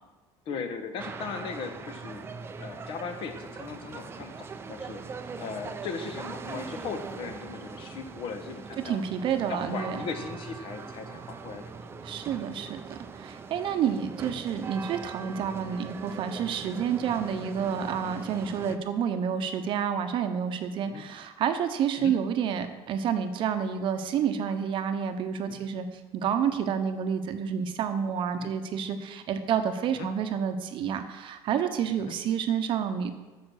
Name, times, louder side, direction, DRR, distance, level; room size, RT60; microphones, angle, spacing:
voice 1, 0.5-2.3 2.6-5.0 5.4-9.0 9.5-12.2 17.6-17.7 18.6-18.8 20.8-21.0 22.0-22.1 25.5-25.6 28.3-28.5 29.9-30.1 32.0-32.1, left 5 dB, 50° left, 7 dB, 1.2 m, -38 dB
sound 1, 1.0-18.8, right 5 dB, 20° right, 0.6 m, -41 dB
voice 2, 8.8-10.0 12.0-25.9 26.1-33.1, right 8 dB, 45° right, 8 dB, 0.9 m, -29 dB
8.8 x 7.2 x 6.4 m, 1.2 s
cardioid pair, 150°, 12 cm